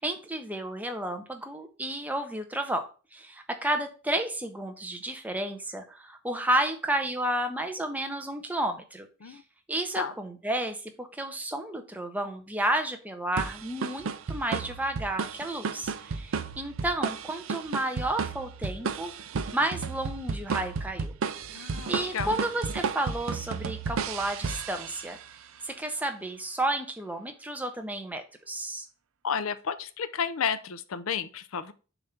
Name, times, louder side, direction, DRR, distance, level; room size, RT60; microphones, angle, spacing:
voice 1, 0.0-2.8 3.1-9.4 9.7-19.1 19.5-21.1 21.5-25.2 25.6-28.9, right 1 dB, 5° right, 5 dB, 0.7 m, -32 dB
sound 1, 13.4-25.3, right 5 dB, 70° right, 0.5 m, -33 dB
voice 2, 21.5-22.4 29.2-31.7, left 6 dB, 75° left, 13 dB, 0.5 m, -32 dB
7.0 x 2.7 x 5.7 m, 0.36 s
head